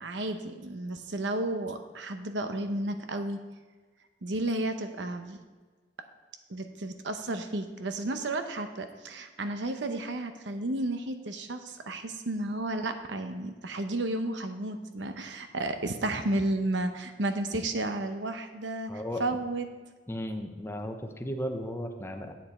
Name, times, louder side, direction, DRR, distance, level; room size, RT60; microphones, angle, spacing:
voice 1, 0.0-3.4 4.2-5.4 6.5-19.7, right 2 dB, 85° right, 8 dB, 0.8 m, -32 dB
voice 2, 18.9-19.2 20.1-22.3, equal, 15° left, 4 dB, 0.8 m, -35 dB
9.3 x 8.5 x 4.3 m, 1.4 s
head